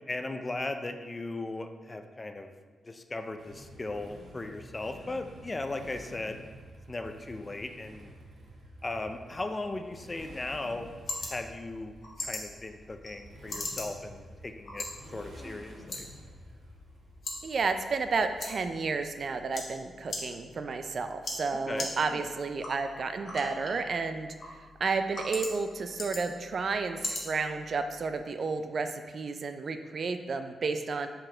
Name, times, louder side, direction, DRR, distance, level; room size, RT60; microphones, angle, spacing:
voice 1, 0.0-2.5 2.8-6.4 6.9-8.1 8.8-10.9 11.2-16.1 21.7-22.3, left 2 dB, 25° left, 7 dB, 0.4 m, -37 dB
Motorcycle, 3.4-19.2, right 1 dB, 75° right, 1.3 m, -51 dB
sound 1, 10.2-28.2, left 2 dB, 50° left, 1.4 m, -42 dB
voice 2, 17.4-31.1, right 4 dB, 50° right, 8 dB, 0.4 m, -32 dB
6.2 x 4.5 x 3.8 m, 1.5 s
wide cardioid pair, 115°, 0 cm